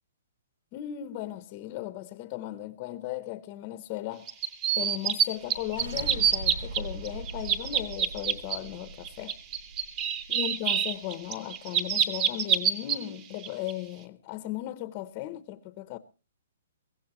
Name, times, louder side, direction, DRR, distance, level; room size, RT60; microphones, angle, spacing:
voice 1, 0.7-4.3 4.7-9.4 10.3-16.0, left 14 dB, 20° left, 0.7 m, -37 dB
sound 1, 4.3-5.2 5.5-6.8 7.0-8.6 9.0-12.9 13.4-13.7, right 8 dB, 20° right, 0.8 m, -26 dB
sound 2, 5.3-10.5, right 3 dB, 75° right, 7.1 m, -41 dB
22.5 x 16.0 x 3.0 m
hypercardioid pair, 180°, 0 cm